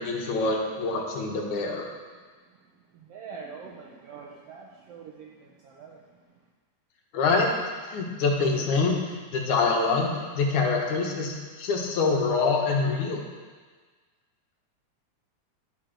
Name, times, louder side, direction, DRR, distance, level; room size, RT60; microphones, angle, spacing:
voice 1, 0.0-1.9 7.1-7.5 7.9-13.2, left 4 dB, 85° left, 0 dB, 2.6 m, -25 dB
voice 2, 2.6-6.4, right 5 dB, 80° right, 0 dB, 1.4 m, -45 dB
11.0 x 6.1 x 5.0 m, 1.5 s
omnidirectional pair, 3.4 m